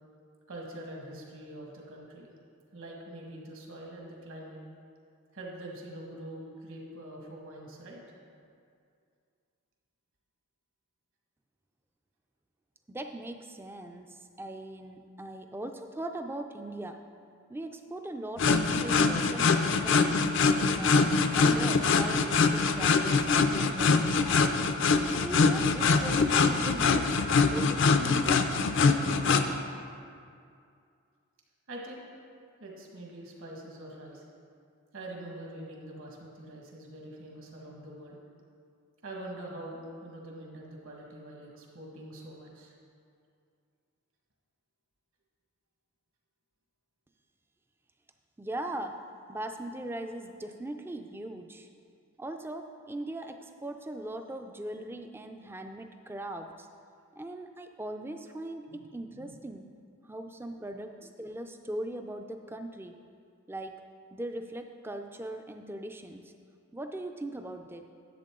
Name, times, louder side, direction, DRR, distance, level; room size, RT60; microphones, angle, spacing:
voice 1, 0.5-2.3 2.7-4.6 5.3-8.0 31.7-32.1 32.6-34.2 34.9-38.2 39.0-42.7 58.7-58.8 59.1-59.3, right 1 dB, 65° right, -2 dB, 1.6 m, -44 dB
voice 2, 12.9-17.0 17.5-20.2 20.7-24.5 25.1-28.5 48.4-49.0 49.3-51.7 52.2-56.7 57.2-59.7 60.0-63.0 63.5-63.8 64.1-66.3 66.7-67.8, right 1 dB, 10° right, 6 dB, 0.3 m, -40 dB
sound 1, 18.4-29.5, left 4 dB, 55° left, 0.4 m, -24 dB
10.5 x 8.2 x 3.7 m, 2.4 s
head